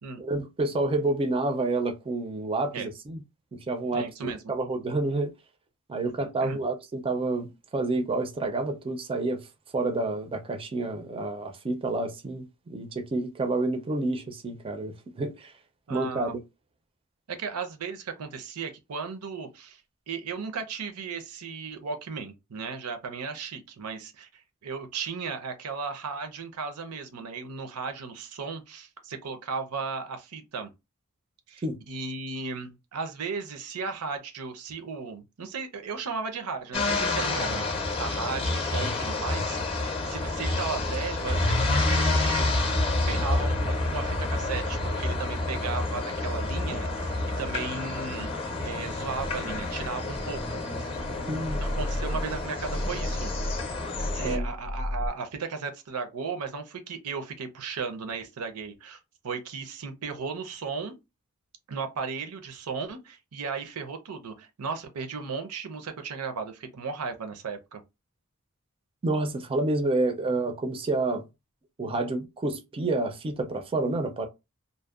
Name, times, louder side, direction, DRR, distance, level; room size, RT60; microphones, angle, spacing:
voice 1, 0.2-3.2 3.5-5.3 5.9-9.4 9.7-15.5 15.9-16.4 31.6-31.8 51.3-51.6 54.2-54.4 69.0-71.2 71.8-74.3, right 2 dB, 25° right, 0.4 m, -29 dB
voice 2, 3.9-4.4 6.0-6.6 15.9-16.3 17.3-19.8 20.1-30.7 31.5-42.7 43.0-48.3 48.6-51.0 51.6-53.3 54.0-59.0 59.2-60.9 61.7-67.8, right 5 dB, 80° right, 0.6 m, -36 dB
sound 1, 36.7-54.4, left 2 dB, 25° left, 0.5 m, -29 dB
sound 2, 46.7-50.6 50.9-55.1, left 1 dB, 90° left, 0.6 m, -35 dB
2.6 x 2.0 x 2.3 m
head